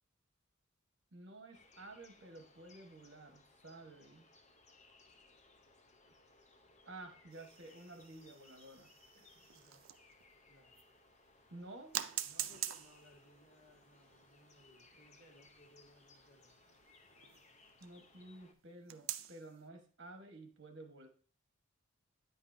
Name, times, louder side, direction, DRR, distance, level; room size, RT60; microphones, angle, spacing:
voice 1, 1.1-4.3 6.8-8.9 11.5-11.9 17.8-21.1, right 2 dB, 60° right, 5 dB, 1.2 m, -52 dB
sound 1, 1.5-18.5, left 3 dB, 35° left, 0.7 m, -65 dB
sound 2, 7.3-10.2 10.8-10.9 11.9-18.0 18.9-19.5, right 12 dB, 75° right, 0.4 m, -46 dB
voice 2, 9.1-9.8 10.5-10.7 12.2-16.5, equal, 80° left, -1 dB, 2.1 m, -65 dB
9.1 x 5.4 x 2.6 m, 0.41 s
head